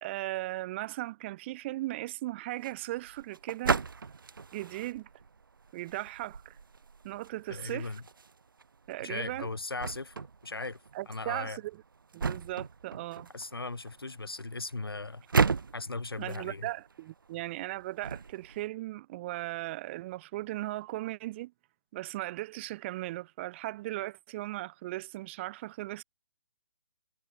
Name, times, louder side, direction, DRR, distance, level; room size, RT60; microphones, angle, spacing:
voice 1, 0.0-3.8 4.5-5.1 5.7-6.6 7.0-7.9 8.9-9.5 10.9-11.8 12.1-13.3 16.2-21.5 21.9-26.0, right 17 dB, 30° right, 2.8 m, -37 dB
sound 1, 2.5-18.7, right 5 dB, 60° right, 3.5 m, -36 dB
voice 2, 7.5-8.0 9.0-10.8 11.1-11.6 13.3-15.2 15.7-16.7, left 3 dB, 75° left, 5.3 m, -38 dB
figure-of-eight pair, 135°, 12 cm